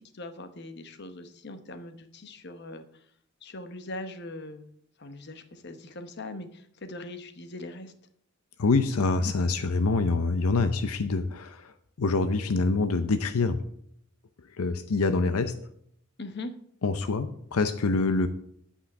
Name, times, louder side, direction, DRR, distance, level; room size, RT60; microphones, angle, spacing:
voice 1, 0.0-3.0 3.4-4.7 5.0-7.9 16.2-16.5, left 2 dB, 50° left, 9 dB, 1.0 m, -41 dB
voice 2, 8.6-11.7 12.0-13.6 14.6-15.5 16.8-18.3, left 3 dB, 80° left, 10 dB, 0.6 m, -25 dB
8.6 x 5.5 x 8.0 m, 0.69 s
head